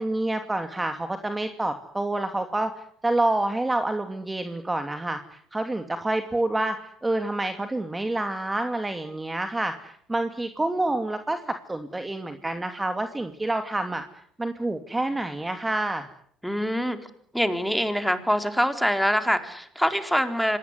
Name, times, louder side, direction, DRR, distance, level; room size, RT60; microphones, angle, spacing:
voice 1, 0.0-14.0 14.4-16.1, right 2 dB, 15° right, 7 dB, 2.7 m, -28 dB
voice 2, 16.4-17.0 17.3-20.6, equal, ahead, 8 dB, 4.0 m, -24 dB
25.5 x 19.5 x 9.8 m, 0.66 s
supercardioid pair, 70°, 0 cm